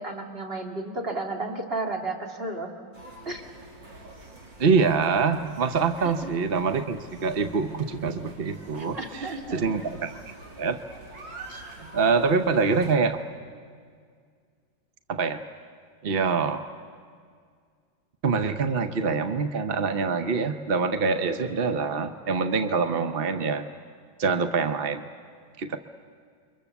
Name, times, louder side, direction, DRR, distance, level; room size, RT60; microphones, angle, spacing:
voice 1, 0.0-2.7 3.3-3.4 6.2-6.4 8.8-9.7, right 2 dB, 30° right, 2 dB, 2.3 m, -33 dB
sound 1, 2.9-13.0, right 2 dB, 75° right, 3.5 m, -46 dB
voice 2, 4.6-10.1 10.6-10.8 11.5-11.6 11.9-13.2 15.1-15.4 16.0-16.6 18.2-23.7 24.2-25.0 25.6-25.8, right 5 dB, 55° right, 8 dB, 0.6 m, -25 dB
29.5 x 23.5 x 7.1 m, 2.1 s
omnidirectional pair, 2.1 m